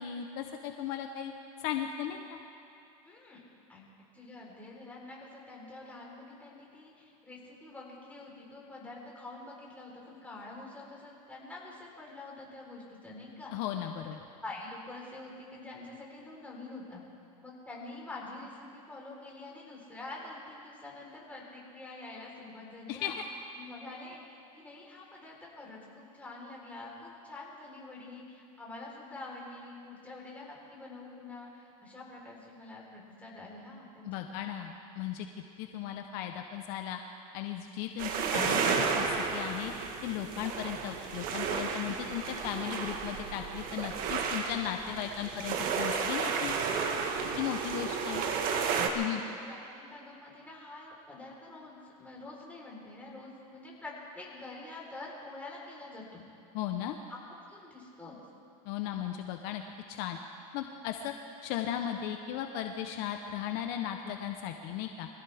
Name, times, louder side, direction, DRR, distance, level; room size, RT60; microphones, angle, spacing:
voice 1, 0.0-1.3 1.6-2.4 13.5-14.3 22.9-23.1 34.0-35.3 35.6-37.0 37.3-39.7 40.0-46.5 47.4-48.2 48.9-49.2 56.5-56.9 58.6-59.6 59.9-60.2 60.5-61.1 61.4-65.1, left 10 dB, 55° left, 5 dB, 1.0 m, -36 dB
voice 2, 3.0-3.4 3.7-3.8 4.1-13.5 14.4-17.0 17.4-23.1 23.5-34.5 47.2-47.9 48.5-56.2 57.1-57.2 57.5-58.2, left 2 dB, 10° left, -4 dB, 4.2 m, -46 dB
sound 1, 38.0-48.9, right 5 dB, 50° right, 1.7 m, -32 dB
24.5 x 16.5 x 3.6 m, 2.6 s
supercardioid pair, 130°, 19 cm